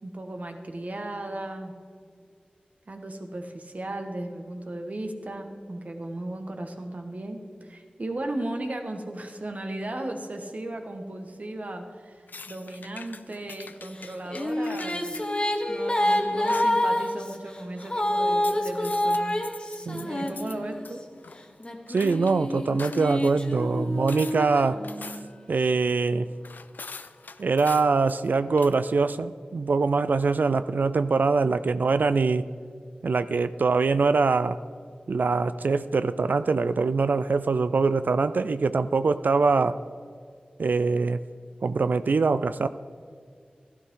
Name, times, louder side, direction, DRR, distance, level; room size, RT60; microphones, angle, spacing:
voice 1, 0.0-1.7 2.9-15.2 15.7-19.3 20.0-21.0, right 1 dB, 55° right, 5 dB, 1.4 m, -36 dB
sound 1, 12.3-15.3 16.5-16.8 18.4-20.6 20.8-22.4 22.8-23.3 24.1-24.4 24.8-25.4 26.4-28.3 28.6-28.7, left 4 dB, 90° left, 0.4 m, -43 dB
Female singing, 14.0-20.9 21.6-25.4, left 1 dB, 35° left, 1.3 m, -28 dB
voice 2, 21.9-24.8 25.5-26.3 27.4-32.5 33.0-34.6 35.1-39.8 40.6-41.2 41.6-42.7, right 4 dB, 80° right, 13 dB, 0.3 m, -23 dB
12.5 x 12.0 x 3.7 m, 2.1 s
wide cardioid pair, 50°, 3 cm